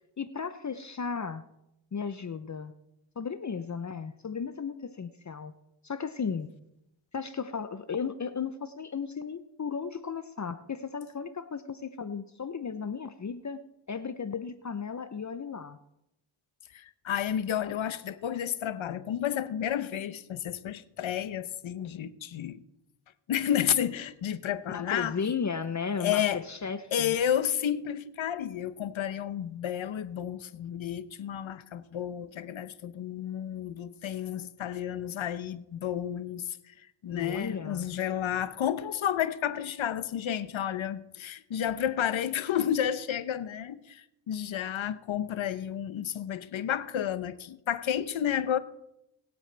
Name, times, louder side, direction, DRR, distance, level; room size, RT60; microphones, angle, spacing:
voice 1, 0.2-1.4 1.9-2.7 3.2-5.5 5.8-6.5 7.1-15.8 24.7-27.1 37.1-37.9, left 6 dB, 35° left, 0.8 m, -35 dB
voice 2, 16.7-22.6 23.3-25.1 26.0-26.4 26.9-36.6 37.0-48.6, left 10 dB, 65° left, 1.0 m, -31 dB
22.0 x 8.1 x 3.4 m
cardioid pair, 65°, 50 cm